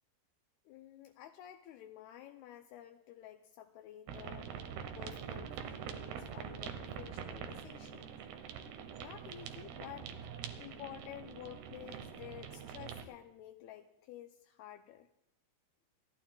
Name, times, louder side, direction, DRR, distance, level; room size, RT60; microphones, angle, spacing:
voice 1, 0.7-4.5 5.0-8.2 9.0-10.1 10.6-15.1, left 12 dB, 85° left, 5 dB, 2.2 m, -51 dB
sound 1, 4.1-13.0, right 7 dB, 75° right, 2.8 m, -45 dB
29.5 x 14.0 x 2.3 m, 0.84 s
omnidirectional pair, 5.1 m